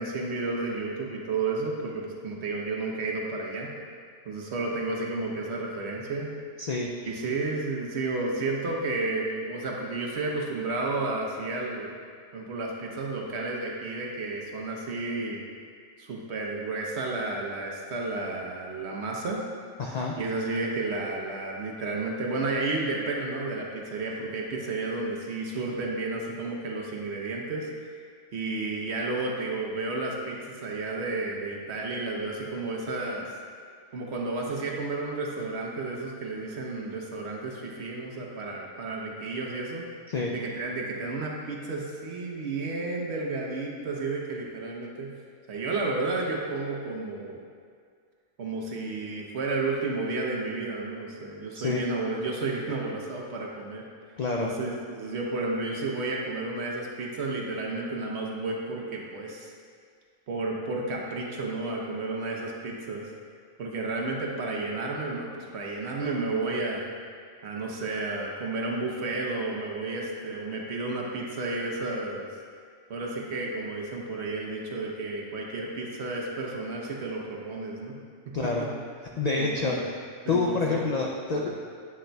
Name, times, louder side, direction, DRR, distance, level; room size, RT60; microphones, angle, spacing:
voice 1, 0.0-3.7 4.2-6.3 7.0-11.9 12.3-15.4 16.0-19.4 20.2-27.7 28.3-33.3 33.9-39.9 40.3-45.1 45.5-47.4 48.4-53.8 54.4-59.5 60.3-63.1 63.6-66.9 67.4-72.3 72.9-77.9 78.3-78.7 79.4-79.8 80.2-80.8 81.4-81.5, right 3 dB, 65° right, -1 dB, 1.1 m, -32 dB
voice 2, 6.6-6.9 19.8-20.2 40.1-40.3 51.5-51.8 54.2-54.5 78.3-78.7 79.2-79.8 80.3-81.5, left 3 dB, 60° left, -1 dB, 0.4 m, -27 dB
8.5 x 6.4 x 2.3 m, 2.1 s
omnidirectional pair, 1.3 m